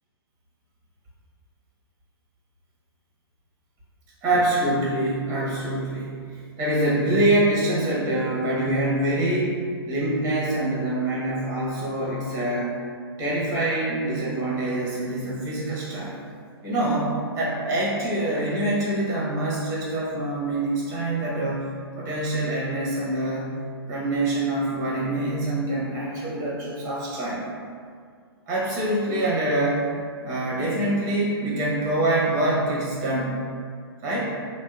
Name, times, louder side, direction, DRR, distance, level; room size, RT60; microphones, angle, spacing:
voice 1, 4.2-6.2 6.6-12.8 13.2-16.2 16.6-17.1 17.3-23.5 23.8-27.4 28.5-29.9 30.2-33.4 34.0-34.4, right 1 dB, 20° right, -7 dB, 0.8 m, -25 dB
sound 1, 4.3-6.7, left 1 dB, 35° left, 0.5 m, -41 dB
2.7 x 2.0 x 2.3 m, 2.1 s
figure-of-eight pair, 120°, 14 cm